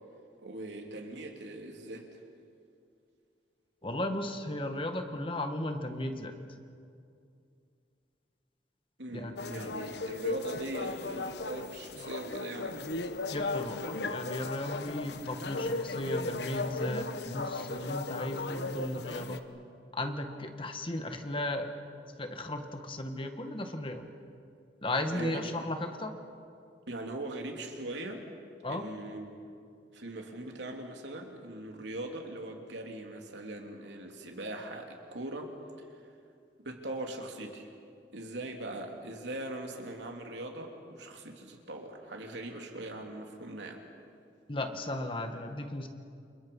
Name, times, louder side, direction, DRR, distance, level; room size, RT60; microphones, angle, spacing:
voice 1, 0.4-2.1 9.0-12.8 25.1-25.5 26.9-28.3 28.7-29.4 29.9-35.5 36.6-37.7 38.1-43.8, right 1 dB, 80° right, 2 dB, 3.2 m, -40 dB
voice 2, 3.8-6.3 9.1-9.7 13.3-19.4 19.9-21.7 22.2-24.1 24.8-26.1 28.6-28.9 44.5-45.9, left 1 dB, 30° left, 6 dB, 1.8 m, -35 dB
sound 1, 9.4-19.4, left 2 dB, 65° left, 1.2 m, -36 dB
29.5 x 28.5 x 5.6 m, 2.4 s
head